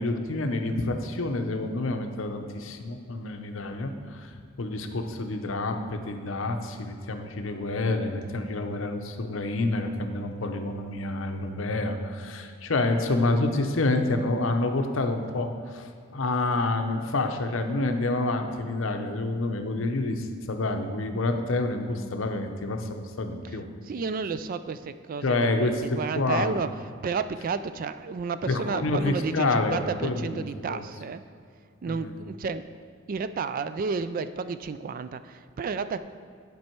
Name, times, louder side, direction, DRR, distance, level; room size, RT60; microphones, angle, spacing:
voice 1, 0.0-4.3 4.6-23.7 25.2-25.8 26.2-26.6 28.5-30.8 31.9-32.1, left 2 dB, 65° left, 5 dB, 0.7 m, -28 dB
voice 2, 23.8-26.7 27.0-31.2 31.8-32.7 33.1-36.0, right 5 dB, 45° right, 12 dB, 0.3 m, -32 dB
10.5 x 5.4 x 4.5 m, 2.2 s
head